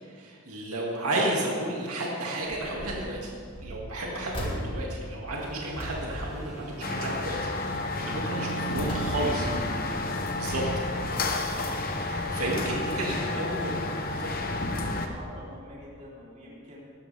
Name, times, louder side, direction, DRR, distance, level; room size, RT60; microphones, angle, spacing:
voice 1, 0.1-3.3 3.6-7.4 8.0-9.5 10.4-10.6 12.0-13.8 14.2-14.4, right 1 dB, 80° right, -3 dB, 2.3 m, -32 dB
sound 1, 2.5-3.1 3.5-7.2 7.5-7.9 8.4-9.6 10.1-11.1 11.8-11.9 12.2-12.3, equal, 25° left, 2.2 m, -39 dB
sound 2, 5.4-14.4, equal, 15° right, 3.5 m, -43 dB
sound 3, 6.8-15.1, left 2 dB, 40° left, 1.0 m, -31 dB
voice 2, 7.6-8.2 8.8-9.1 12.3-13.6 14.1-16.8, equal, 35° right, -6 dB, 3.6 m, -47 dB
19.0 x 13.0 x 3.5 m, 2.2 s
head